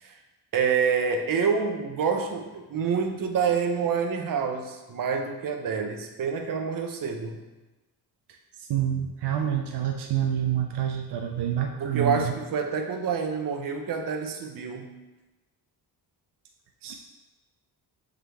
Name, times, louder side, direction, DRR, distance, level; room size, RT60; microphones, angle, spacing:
voice 1, 0.5-7.4 11.8-15.0, right 6 dB, 55° right, 3 dB, 0.8 m, -27 dB
voice 2, 8.6-12.3 16.8-17.0, right 10 dB, 85° right, 3 dB, 0.6 m, -27 dB
7.5 x 3.7 x 3.4 m, 1.1 s
cardioid pair, 115°, 39 cm